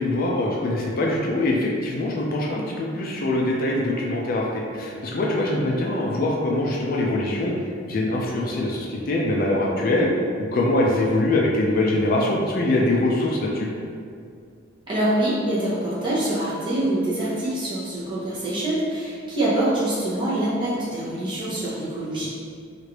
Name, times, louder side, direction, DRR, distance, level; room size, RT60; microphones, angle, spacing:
voice 1, 0.0-7.5 7.8-10.1 10.4-13.7, left 1 dB, 45° left, -2 dB, 0.3 m, -23 dB
voice 2, 14.9-22.3, right 1 dB, 25° right, -9 dB, 0.8 m, -25 dB
3.1 x 2.5 x 2.9 m, 2.3 s
head